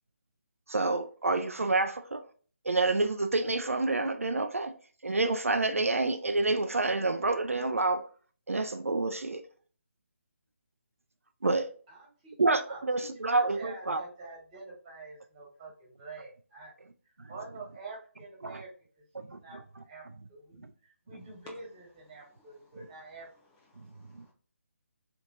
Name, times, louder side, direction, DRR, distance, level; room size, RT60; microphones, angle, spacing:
voice 1, 0.7-2.3 2.6-4.8 5.0-8.1 8.5-9.4 11.4-11.7 12.4-14.0 17.2-17.3 18.4-18.6 19.3-19.6 20.6-20.7 24.1-24.2, right 3 dB, 75° right, 0.4 m, -28 dB
voice 2, 11.9-12.4 12.7-16.7 17.3-18.7 19.2-19.6 19.8-20.0 20.3-23.3, right 3 dB, 25° right, 1.6 m, -47 dB
voice 3, 22.2-22.7 23.7-24.3, left 2 dB, 15° left, 0.4 m, -67 dB
3.3 x 3.1 x 2.6 m
figure-of-eight pair, 145°, 8 cm